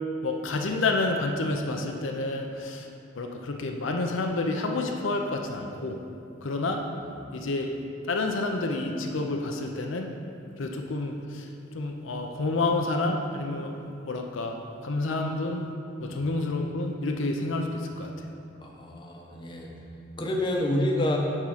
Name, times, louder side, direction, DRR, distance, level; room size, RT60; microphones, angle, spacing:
voice 1, 0.2-2.9 3.1-6.0 6.4-6.8 7.3-7.7 8.1-10.1 10.6-13.7 14.0-14.6 14.8-15.7 16.0-18.3, left 2 dB, 75° left, 3 dB, 0.6 m, -29 dB
voice 2, 18.6-19.7 20.2-21.2, left 1 dB, 25° left, -1 dB, 0.8 m, -28 dB
8.9 x 3.7 x 5.7 m, 2.6 s
head